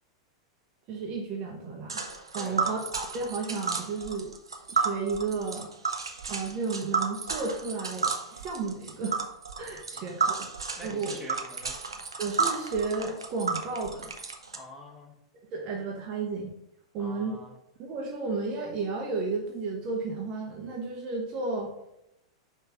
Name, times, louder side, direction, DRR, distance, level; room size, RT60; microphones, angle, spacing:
voice 1, 0.9-4.3 4.7-5.7 6.3-9.2 9.6-10.5 10.8-11.2 12.2-14.1 15.5-16.5 16.9-17.4 17.8-21.7, right 4 dB, 40° right, 0 dB, 1.0 m, -33 dB
Tick, 1.9-14.6, right 5 dB, 80° right, 0.6 m, -32 dB
voice 2, 2.3-2.8 9.9-10.2 10.7-11.8 14.5-15.1 17.0-17.6, equal, 5° right, -3 dB, 1.8 m, -46 dB
5.6 x 3.2 x 5.3 m, 0.84 s
figure-of-eight pair, 95°, 3 cm